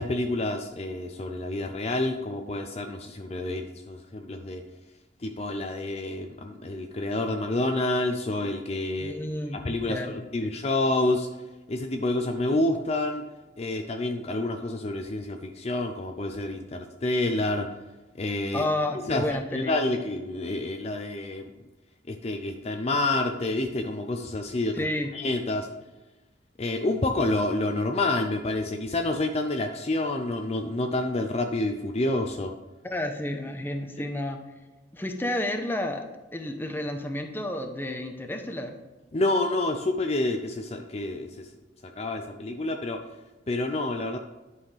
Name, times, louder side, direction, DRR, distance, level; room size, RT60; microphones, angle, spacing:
voice 1, 0.0-4.6 5.2-11.3 11.7-13.2 13.6-17.7 18.2-18.6 19.1-21.5 22.1-24.9 25.1-25.7 26.6-32.5 34.0-34.1 39.1-41.5 41.8-43.0 43.5-44.2, left 2 dB, 35° left, 4 dB, 0.5 m, -28 dB
voice 2, 9.0-10.5 18.5-19.7 24.7-25.1 32.8-34.4 34.9-36.0 36.3-38.7, left 1 dB, 10° left, 4 dB, 0.8 m, -31 dB
10.5 x 5.5 x 3.3 m, 1.1 s
head